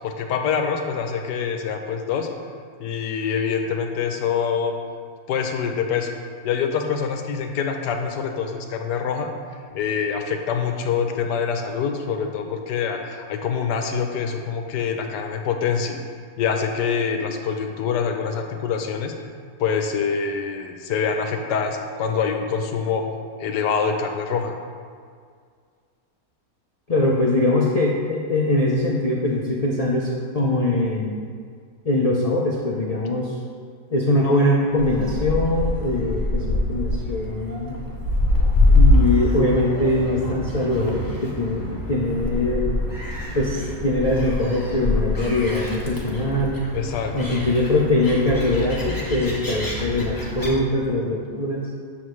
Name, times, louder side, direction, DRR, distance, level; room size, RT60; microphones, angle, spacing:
voice 1, 0.0-2.3 2.8-4.7 5.3-6.1 6.4-9.3 9.7-16.0 16.4-19.1 19.6-23.0 23.4-24.5 46.7-47.4, left 6 dB, 90° left, 5 dB, 1.4 m, -25 dB
voice 2, 26.9-31.2 31.8-33.3 33.9-37.8 38.7-42.7 43.3-46.6 47.1-51.7, left 1 dB, 50° left, -3 dB, 0.4 m, -22 dB
Gull seagull, 34.8-50.5, left 2 dB, 15° left, 1.0 m, -24 dB
8.7 x 6.9 x 3.2 m, 2.1 s
omnidirectional pair, 1.7 m